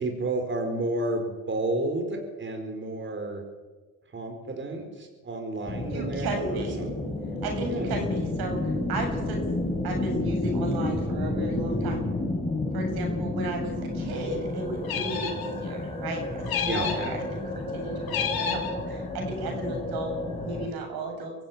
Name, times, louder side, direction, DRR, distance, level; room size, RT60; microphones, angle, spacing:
voice 1, 0.0-3.4 4.1-6.9 7.6-8.0 16.7-16.9, right 2 dB, 30° right, 4 dB, 4.9 m, -31 dB
sound 1, 5.7-20.7, left 2 dB, 15° left, 5.7 m, -31 dB
voice 2, 5.9-6.8 7.4-9.4 9.8-12.0 12.7-17.4 17.7-21.3, right 2 dB, 70° right, 3 dB, 7.7 m, -34 dB
sound 2, 14.8-15.5 16.5-17.1 18.1-18.7, left 7 dB, 70° left, 6.0 m, -30 dB
24.0 x 14.5 x 9.2 m, 1.3 s
supercardioid pair, 75°, 39 cm